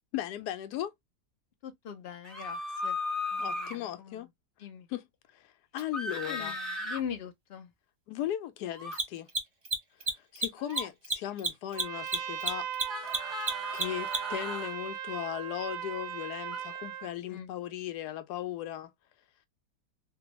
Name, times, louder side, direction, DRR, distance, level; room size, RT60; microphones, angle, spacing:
voice 1, 0.1-0.9 3.4-4.3 4.9-5.1 5.3-5.5 5.7-6.6 8.1-9.3 10.3-13.2 13.7-18.9, left 11 dB, 90° left, 1.2 m, -37 dB
voice 2, 1.6-3.0 3.3-4.3 4.6-4.9 6.2-7.7 17.3-17.6, left 8 dB, 60° left, 0.6 m, -42 dB
sound 1, 2.2-3.8 5.9-7.0 8.7-9.0 10.6-10.9 12.8-14.8 16.5-16.6, left 2 dB, ahead, 0.8 m, -36 dB
Mechanisms, 5.8-5.9 8.8-14.4, right 4 dB, 30° right, 0.8 m, -31 dB
Trumpet, 11.7-17.1, right 9 dB, 80° right, 1.2 m, -38 dB
3.4 x 2.2 x 2.8 m
omnidirectional pair, 1.7 m